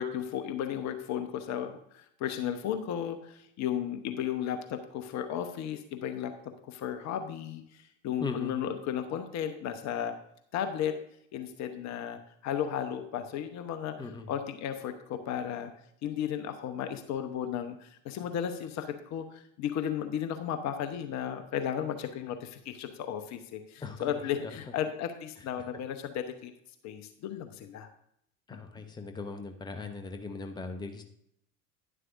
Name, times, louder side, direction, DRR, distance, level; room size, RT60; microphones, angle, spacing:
voice 1, 0.0-6.3 6.6-10.1 10.5-10.9 11.3-13.9 14.3-15.7 16.0-26.5 26.8-27.9, left 9 dB, 40° left, 8 dB, 1.0 m, -34 dB
voice 2, 8.2-8.5 14.0-14.3 23.8-24.1 24.4-24.6 28.5-31.0, left 4 dB, 10° left, 6 dB, 0.9 m, -39 dB
11.0 x 10.5 x 2.6 m, 0.72 s
figure-of-eight pair, 75°, 44 cm